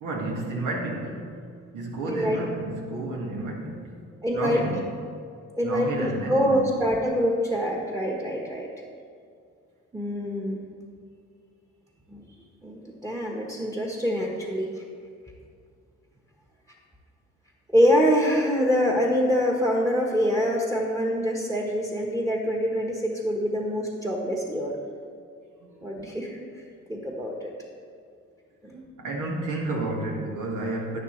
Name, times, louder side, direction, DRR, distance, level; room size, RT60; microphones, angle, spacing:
voice 1, 0.0-1.3 1.7-3.9 4.3-4.9 5.6-6.6 25.6-26.0 29.0-31.0, right 2 dB, 80° right, -1 dB, 1.9 m, -31 dB
voice 2, 2.1-2.4 4.2-4.6 5.5-8.7 9.9-10.6 12.1-12.2 12.6-14.8 17.7-24.7 25.8-26.4 26.9-27.5 28.6-28.8, equal, 10° right, -1 dB, 1.2 m, -25 dB
11.0 x 9.6 x 3.2 m, 2.3 s
cardioid pair, 90°, 30 cm